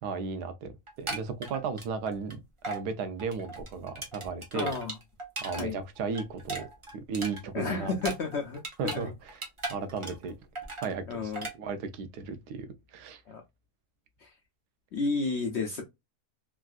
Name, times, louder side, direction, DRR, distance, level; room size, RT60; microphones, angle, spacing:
voice 1, 0.0-2.4 2.6-4.8 5.4-6.7 6.9-7.9 8.8-9.4 9.7-10.3 10.8-11.3 11.6-13.2, right 5 dB, 90° right, 1.2 m, -35 dB
sound 1, 0.9-2.3 2.6-2.8 3.2-5.6 6.0-9.0 9.3-10.3 10.5-10.9 11.3-11.5, right 2 dB, 30° right, 0.5 m, -37 dB
voice 2, 4.5-5.0 5.6-5.8 7.5-9.1 11.1-11.5 13.3-13.4 14.2-14.3 14.9-15.8, left 4 dB, 70° left, 0.6 m, -32 dB
3.5 x 2.4 x 2.3 m
omnidirectional pair, 1.6 m